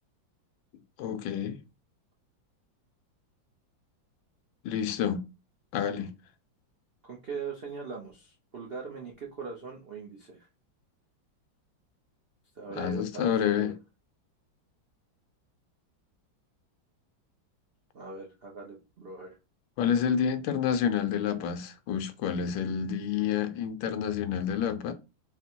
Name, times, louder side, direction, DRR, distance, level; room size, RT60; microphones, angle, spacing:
voice 1, 1.0-1.6 4.6-5.2 5.7-6.1 12.7-13.7 19.8-24.9, left 8 dB, 80° left, 1.4 m, -29 dB
voice 2, 7.0-10.5 12.6-13.7 17.9-19.4, right 5 dB, 70° right, 0.5 m, -41 dB
4.1 x 2.1 x 4.3 m
omnidirectional pair, 2.1 m